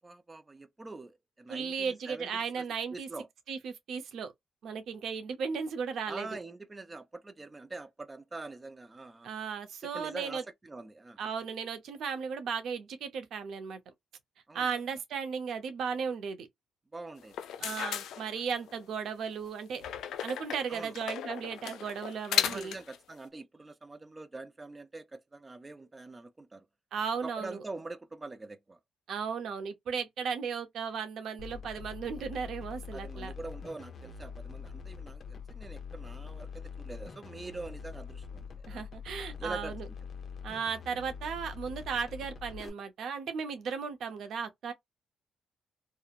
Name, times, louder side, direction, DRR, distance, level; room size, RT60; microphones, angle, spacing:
voice 1, 0.0-2.6 2.9-3.3 6.1-9.3 9.8-11.2 14.5-14.8 16.9-17.7 20.7-21.0 22.5-26.7 27.2-28.8 32.9-38.8 39.4-39.9, right 3 dB, 20° right, 0.4 m, -44 dB
voice 2, 1.5-3.1 3.5-4.3 4.6-6.3 9.2-10.4 11.2-13.8 14.5-16.5 17.6-19.8 20.2-22.7 26.9-27.6 29.1-33.3 38.7-39.9 40.4-44.7, right 6 dB, 70° right, 0.7 m, -35 dB
sound 1, 17.2-18.8 19.8-23.0, left 10 dB, 80° left, 0.4 m, -35 dB
sound 2, 31.4-42.7, left 6 dB, 45° left, 0.7 m, -44 dB
2.9 x 2.1 x 2.4 m
cardioid pair, 90°, 0 cm